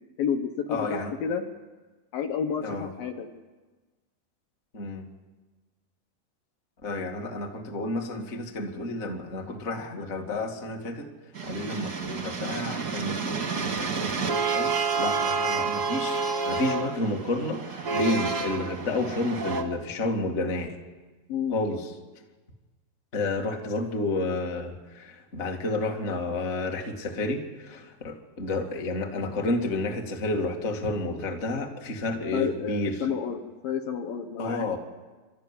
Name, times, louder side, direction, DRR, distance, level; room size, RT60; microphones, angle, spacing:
voice 1, 0.2-1.5 2.1-3.3 21.3-21.6 32.3-34.7, left 7 dB, 65° left, 5 dB, 2.5 m, -30 dB
voice 2, 0.7-1.1 2.6-2.9 4.7-5.1 6.8-11.1 11.4-20.7 21.5-21.9 23.1-33.1 34.4-34.8, left 2 dB, 35° left, 2 dB, 1.0 m, -31 dB
sound 1, 11.3-19.6, right 4 dB, 55° right, 1.0 m, -29 dB
28.5 x 13.0 x 9.9 m, 1.3 s
omnidirectional pair, 5.1 m